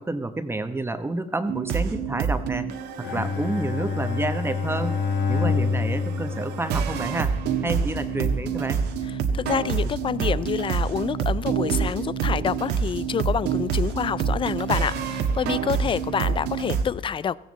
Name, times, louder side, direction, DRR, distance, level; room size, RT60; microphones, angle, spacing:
voice 1, 0.0-2.7 3.0-5.0 5.3-7.3 7.6-8.9, right 2 dB, 15° right, 10 dB, 1.0 m, -29 dB
sound 1, 1.5-16.8, right 6 dB, 80° right, 1.5 m, -27 dB
Bowed string instrument, 3.0-7.4, left 4 dB, 75° left, 1.5 m, -27 dB
voice 2, 9.3-17.4, left 7 dB, 30° left, 20 dB, 0.4 m, -27 dB
17.0 x 15.5 x 4.1 m, 0.93 s
cardioid pair, 110°, 17 cm